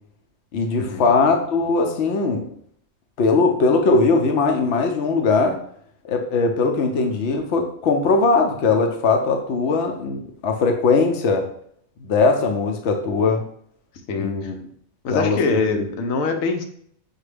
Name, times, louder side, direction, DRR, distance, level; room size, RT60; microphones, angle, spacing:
voice 1, 0.5-2.5 3.2-5.6 6.0-11.5 12.0-13.4 14.2-14.5 15.1-15.4 15.7-15.8, left 4 dB, 65° left, 3 dB, 0.8 m, -20 dB
voice 2, 14.1-14.5 15.0-16.6, left 3 dB, 80° left, 5 dB, 1.1 m, -24 dB
6.3 x 2.2 x 3.3 m, 0.65 s
omnidirectional pair, 1.4 m